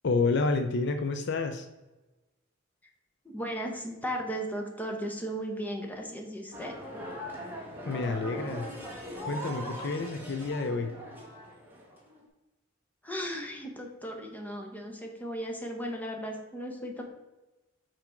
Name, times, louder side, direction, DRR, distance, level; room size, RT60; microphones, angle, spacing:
voice 1, 0.0-1.7 7.9-8.7 9.3-10.9, left 3 dB, 55° left, 8 dB, 0.5 m, -29 dB
voice 2, 3.2-6.7 13.0-17.0, equal, 10° left, 2 dB, 0.9 m, -36 dB
sound 1, 6.5-12.3, equal, 10° right, 1.3 m, -40 dB
5.8 x 4.9 x 4.4 m, 1.1 s
head